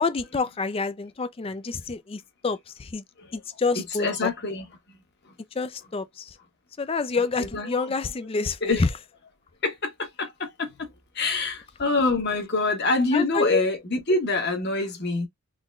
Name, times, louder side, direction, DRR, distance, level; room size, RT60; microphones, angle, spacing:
voice 1, 0.0-3.0 3.3-4.3 5.5-6.4 6.8-8.9 13.1-13.6, left 4 dB, 25° left, 0.4 m, -27 dB
voice 2, 4.0-4.7 5.2-5.3 7.4-7.9 8.6-8.8 9.6-15.3, left 3 dB, 50° left, 1.3 m, -26 dB
3.9 x 3.0 x 2.4 m
head